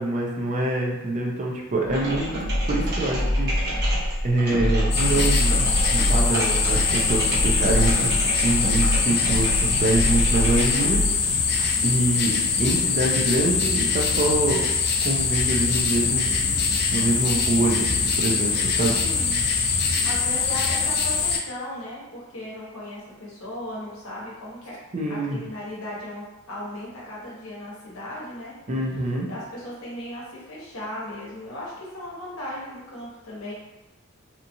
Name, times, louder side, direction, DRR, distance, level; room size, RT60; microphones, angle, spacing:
voice 1, 0.0-2.3 2.7-3.8 4.2-5.7 6.1-11.3 11.8-14.6 15.0-16.3 16.9-19.0 24.9-25.4 28.7-29.3, right 2 dB, 35° right, -1 dB, 0.5 m, -25 dB
sound 1, 1.8-11.2, equal, 55° right, 1.0 m, -24 dB
voice 2, 1.9-2.4 19.0-19.4 20.0-24.8 25.1-28.5 29.3-33.5, left 1 dB, 70° left, -6 dB, 0.9 m, -36 dB
sound 2, 4.9-21.4, left 5 dB, 50° left, 0.4 m, -23 dB
2.8 x 2.4 x 2.6 m, 0.99 s
head